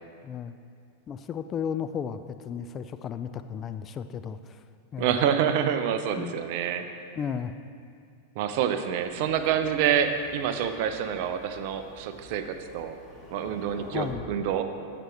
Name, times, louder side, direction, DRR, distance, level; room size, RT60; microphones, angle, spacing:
voice 1, 0.2-0.6 1.1-4.6 4.9-5.2 6.1-6.4 7.2-7.5 13.9-14.2, left 7 dB, 25° left, 10 dB, 0.3 m, -34 dB
voice 2, 5.0-6.9 8.4-12.9 13.3-14.7, right 8 dB, 45° right, 9 dB, 0.6 m, -27 dB
Thunder, 9.0-14.1, left 1 dB, 5° left, 1.8 m, -49 dB
15.0 x 5.9 x 3.4 m, 2.3 s
figure-of-eight pair, 90°, 0 cm